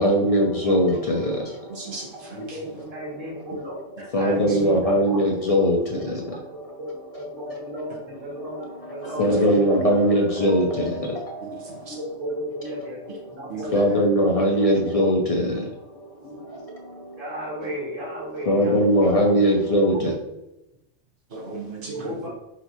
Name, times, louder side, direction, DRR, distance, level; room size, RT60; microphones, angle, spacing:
voice 1, 0.0-1.4 1.8-2.0 4.1-6.8 8.6-8.7 9.0-11.9 13.7-16.5 17.0-17.2 18.5-20.1, equal, 65° left, 0 dB, 0.3 m, -21 dB
voice 2, 1.7-2.6 11.4-11.9 13.5-13.7 20.0-20.1 21.3-22.3, right 4 dB, 45° right, -1 dB, 1.0 m, -37 dB
voice 3, 2.4-5.2 6.8-9.9 11.9-13.0 13.3-14.7 16.2-16.4 16.7-16.8 17.2-19.5 20.2-20.3 21.9-22.3, equal, 65° right, -8 dB, 2.0 m, -35 dB
4.0 x 3.9 x 2.9 m, 0.88 s
omnidirectional pair, 1.3 m